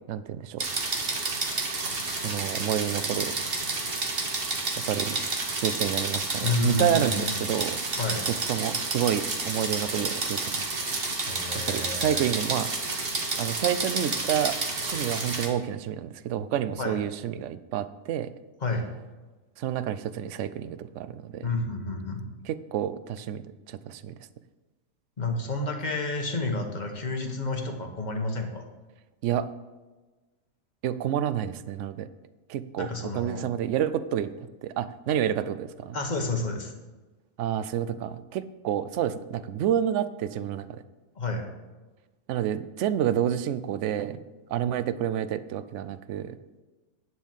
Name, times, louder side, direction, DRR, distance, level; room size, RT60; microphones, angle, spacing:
voice 1, 0.1-0.7 2.2-3.3 4.9-5.2 5.6-7.8 8.5-10.6 11.7-12.9 13.4-14.6 14.8-18.3 19.6-21.5 22.5-23.4 23.7-24.1 29.2-29.5 30.8-32.1 32.5-32.9 33.1-34.3 34.6-36.0 37.4-40.8 42.3-44.2 44.5-46.4, right 10 dB, 65° right, 13 dB, 0.8 m, -29 dB
sound 1, 0.6-15.5, right 3 dB, 40° right, 1.4 m, -30 dB
voice 2, 6.4-7.4 8.0-8.2 11.3-12.2 16.8-17.0 18.6-18.9 21.4-22.3 25.2-28.6 32.8-33.5 35.9-36.7 41.1-41.5, left 2 dB, 30° left, 3 dB, 1.2 m, -30 dB
10.5 x 4.6 x 7.4 m, 1.2 s
omnidirectional pair, 1.6 m